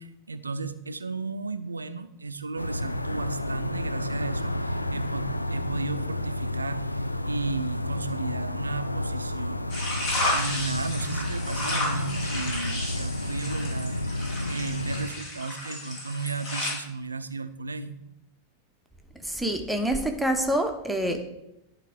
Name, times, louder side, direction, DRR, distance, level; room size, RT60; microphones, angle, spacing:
voice 1, 0.0-9.7 10.3-14.0 14.5-18.0, right 3 dB, 80° right, 12 dB, 0.5 m, -34 dB
sound 1, 2.6-15.1, left 1 dB, 85° left, 0.3 m, -31 dB
sound 2, 9.7-16.7, left 1 dB, 40° left, 2.6 m, -32 dB
voice 2, 19.2-21.2, right 1 dB, ahead, 4 dB, 1.0 m, -26 dB
11.0 x 3.8 x 5.2 m, 0.88 s
figure-of-eight pair, 90°, 0 cm